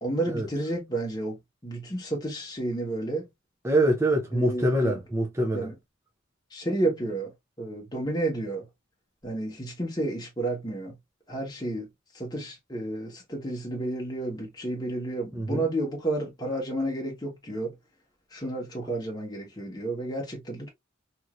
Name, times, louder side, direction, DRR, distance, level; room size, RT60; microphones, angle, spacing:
voice 1, 0.0-3.3 4.3-5.0 5.5-5.7 6.5-7.3 7.6-8.7 9.2-11.0 11.3-11.9 12.1-17.7 18.3-20.7, right 2 dB, 20° left, 1.0 m, -31 dB
voice 2, 3.6-5.7 15.3-15.6, right 1 dB, 15° right, 0.5 m, -24 dB
3.0 x 2.6 x 2.3 m
head